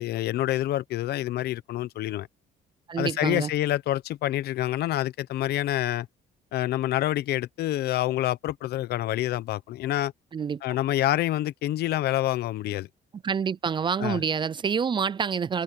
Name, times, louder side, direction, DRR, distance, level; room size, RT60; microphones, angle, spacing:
voice 1, 0.0-2.3 3.0-6.1 6.5-10.1 10.6-12.9 14.0-14.2, left 14 dB, 70° left, 1.0 m, -27 dB
voice 2, 2.9-3.5 10.3-10.6 13.2-15.6, right 6 dB, 30° right, 0.5 m, -27 dB
cardioid pair, 110°, 17 cm